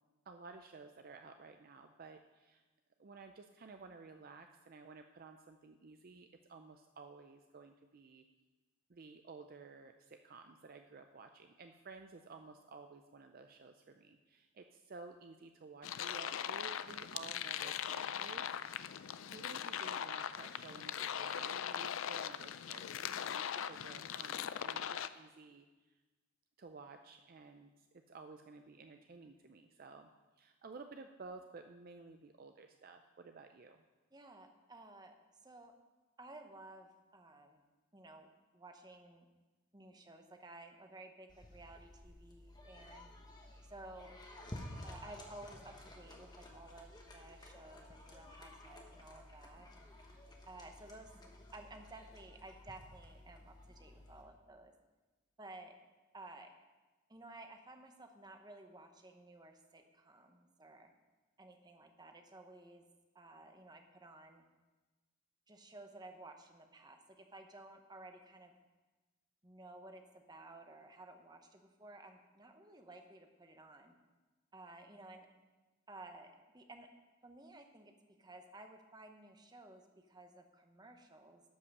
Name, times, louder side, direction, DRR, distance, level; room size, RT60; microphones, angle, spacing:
voice 1, 0.3-2.6 3.0-8.2 8.9-18.9 19.3-23.4 23.7-25.7 26.6-30.1 30.4-33.8, right 4 dB, 45° right, 6 dB, 0.5 m, -54 dB
sound 1, 15.8-25.1, left 9 dB, 70° left, 0.4 m, -40 dB
voice 2, 34.1-35.1 35.4-35.7 36.2-37.7 37.9-38.3 38.5-39.3 39.7-43.1 43.6-44.1 44.8-49.7 50.5-51.1 51.5-54.7 55.4-55.7 56.1-56.5 57.1-60.9 61.4-62.8 63.1-64.4 65.5-68.5 69.4-73.9 74.5-75.3 75.9-76.9 77.2-77.9 78.2-81.4, right 2 dB, 20° right, 5 dB, 0.8 m, -55 dB
sound 2, 41.3-54.2, left 1 dB, 20° left, 1.2 m, -53 dB
12.5 x 5.6 x 6.6 m, 1.2 s
head